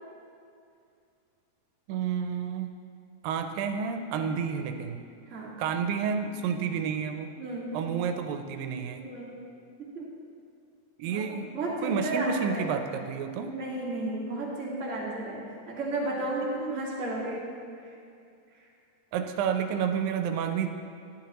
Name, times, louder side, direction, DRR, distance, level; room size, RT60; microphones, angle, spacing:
voice 1, 1.9-2.7 3.2-5.0 5.6-7.3 7.7-9.0 11.0-11.5 11.8-13.5 19.1-20.7, right 7 dB, 85° right, 6 dB, 2.3 m, -30 dB
voice 2, 7.4-7.8 9.0-9.3 9.9-10.1 11.0-12.7 13.4-17.5 17.8-17.9, right 2 dB, 35° right, -5 dB, 1.3 m, -33 dB
11.5 x 10.5 x 3.0 m, 2.4 s
omnidirectional pair, 4.0 m